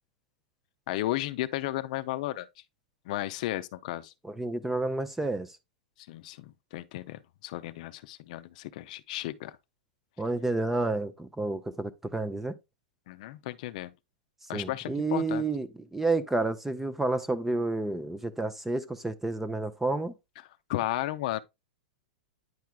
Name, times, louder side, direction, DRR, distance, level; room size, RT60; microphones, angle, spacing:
voice 1, 0.9-2.5 3.1-4.1 6.0-9.6 13.1-13.9 14.5-15.4 20.7-21.4, left 15 dB, 55° left, 0.5 m, -34 dB
voice 2, 4.2-5.5 10.2-12.5 14.5-20.1, right 2 dB, 5° right, 0.4 m, -30 dB
9.4 x 4.6 x 2.2 m
hypercardioid pair, 135°, 5 cm